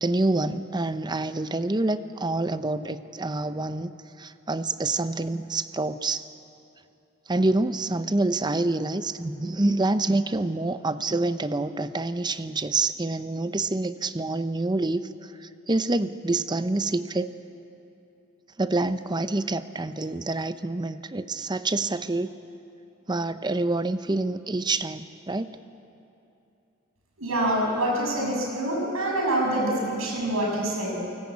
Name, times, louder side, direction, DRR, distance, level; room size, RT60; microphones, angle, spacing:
voice 1, 0.0-3.9 4.2-6.3 7.3-17.3 18.6-22.3 23.1-25.5, right 2 dB, 20° right, 11 dB, 0.7 m, -27 dB
voice 2, 27.2-31.0, right 1 dB, 80° right, -1 dB, 7.3 m, -26 dB
29.0 x 19.0 x 8.5 m, 2.7 s
head